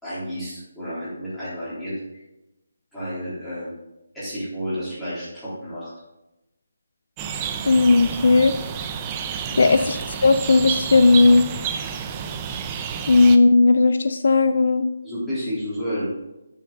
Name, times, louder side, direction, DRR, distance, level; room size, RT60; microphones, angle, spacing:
voice 1, 0.0-1.9 2.9-3.8 4.1-5.9 9.5-9.7 15.0-16.0, equal, 5° left, -13 dB, 3.7 m, -31 dB
sound 1, 7.2-13.4, right 7 dB, 15° right, 0.5 m, -30 dB
voice 2, 7.7-8.5 9.6-11.4 13.1-14.8, left 3 dB, 60° left, 10 dB, 0.4 m, -16 dB
9.8 x 6.6 x 4.0 m, 0.95 s
hypercardioid pair, 170°, 0 cm